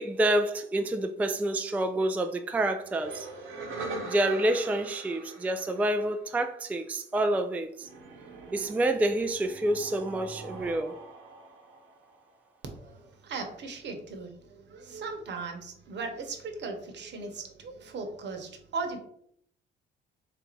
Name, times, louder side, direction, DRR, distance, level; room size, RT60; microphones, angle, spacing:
voice 1, 0.0-3.3 4.0-7.9 8.5-10.9, right 1 dB, 10° right, 0.3 m, -28 dB
sound 1, 2.8-6.5 7.8-12.5, right 3 dB, 90° right, 1.1 m, -43 dB
voice 2, 12.7-19.0, right 4 dB, 60° right, 1.0 m, -38 dB
3.5 x 2.6 x 4.4 m
cardioid pair, 90°, 20 cm